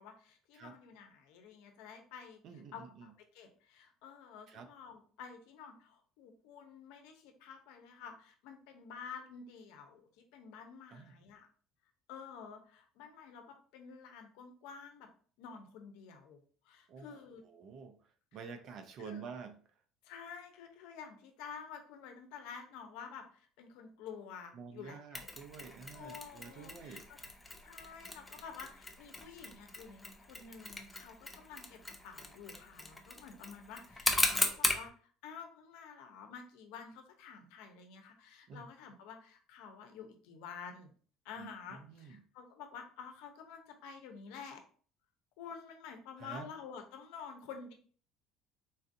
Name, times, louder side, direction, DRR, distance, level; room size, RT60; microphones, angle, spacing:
voice 1, 0.0-2.4 2.7-10.0 10.3-11.5 12.1-15.1 15.4-17.4 18.3-18.4 19.0-19.3 20.0-25.3 25.9-27.2 27.6-40.9 41.2-44.6 45.4-47.7, left 6 dB, 80° left, 5 dB, 0.7 m, -50 dB
voice 2, 2.4-3.1 4.5-4.7 10.9-11.1 16.9-17.2 17.4-18.0 18.3-19.5 24.5-27.1 38.5-38.6 41.4-42.2 46.2-46.5, right 6 dB, 55° right, 8 dB, 0.5 m, -48 dB
Mechanisms, 25.1-34.9, left 2 dB, 10° left, 0.6 m, -38 dB
4.0 x 2.5 x 2.6 m, 0.43 s
supercardioid pair, 105°, 0 cm